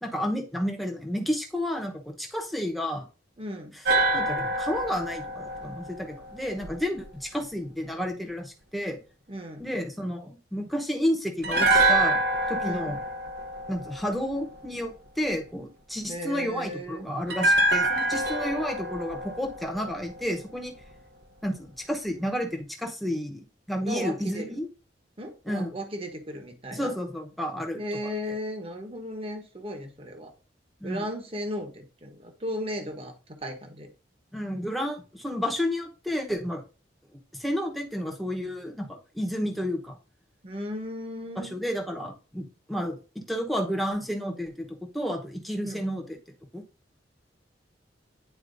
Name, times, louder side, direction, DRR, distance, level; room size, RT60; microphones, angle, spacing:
voice 1, 0.0-3.1 4.1-9.0 9.6-12.2 12.5-13.0 13.7-20.7 21.4-23.4 23.7-24.7 25.5-25.7 26.7-27.8 30.8-31.0 34.3-36.6 37.3-40.0 41.4-46.0 46.5-46.6, equal, ahead, 1 dB, 0.9 m, -31 dB
voice 2, 3.4-3.7 9.3-9.6 12.6-12.9 16.1-17.1 23.8-24.6 25.2-26.9 27.8-30.3 30.8-33.9 40.4-41.6 45.6-45.8, equal, 30° right, 5 dB, 1.0 m, -36 dB
sound 1, 3.8-7.0 11.4-14.6 17.3-20.5 20.8-20.9, right 2 dB, 60° right, 0.9 m, -26 dB
9.4 x 4.2 x 2.6 m, 0.33 s
head